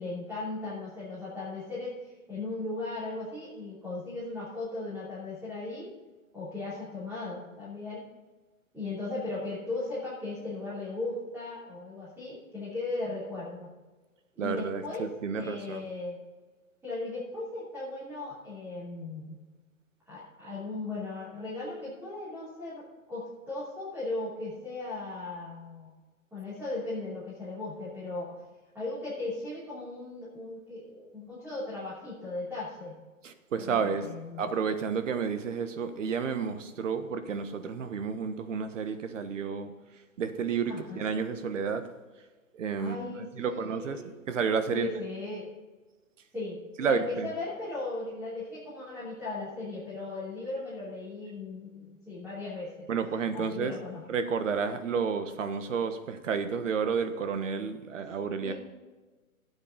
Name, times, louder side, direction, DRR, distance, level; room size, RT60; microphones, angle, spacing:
voice 1, 0.0-5.9 6.3-8.0 8.7-13.7 14.3-15.1 15.3-16.2 16.8-19.4 20.1-25.9 26.3-28.4 28.7-33.0 33.6-34.5 40.7-41.0 42.8-44.1 44.7-45.5 46.3-52.9 53.3-54.0 58.4-58.5, left 2 dB, 5° right, -10 dB, 3.0 m, -37 dB
voice 2, 14.4-15.8 33.2-34.1 34.4-39.7 40.2-41.9 42.5-43.0 43.3-44.9 46.8-47.3 52.9-53.8 54.1-58.5, right 6 dB, 60° right, 9 dB, 1.4 m, -31 dB
13.0 x 8.8 x 3.9 m, 1.3 s
hypercardioid pair, 140°, 42 cm